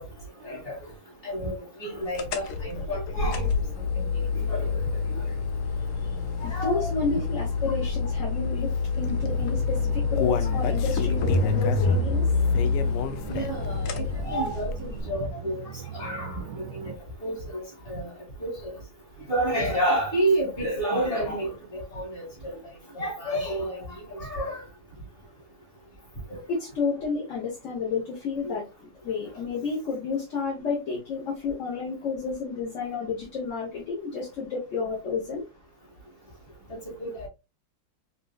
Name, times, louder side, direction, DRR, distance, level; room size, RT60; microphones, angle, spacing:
voice 1, 0.4-0.8 1.2-1.5 1.8-3.5 4.1-4.8 6.4-6.9 13.3-15.6 15.9-16.9 17.2-18.1 18.4-18.7 19.3-22.5 22.9-23.8 24.1-24.6 26.3-26.4 28.4-28.5 37.0-37.3, right 1 dB, 25° left, 2.4 m, -30 dB
sound 1, 2.1-15.0, left 4 dB, 90° left, 0.7 m, -27 dB
voice 2, 6.4-8.7 9.0-12.2 26.5-35.4, left 4 dB, 45° left, 1.3 m, -31 dB
sound 2, 9.0-17.0, right 7 dB, 75° right, 1.1 m, -39 dB
Human voice, 9.6-13.7 14.1-14.2 14.7-14.8, left 8 dB, 75° left, 1.1 m, -32 dB
5.4 x 3.1 x 2.3 m
omnidirectional pair, 2.3 m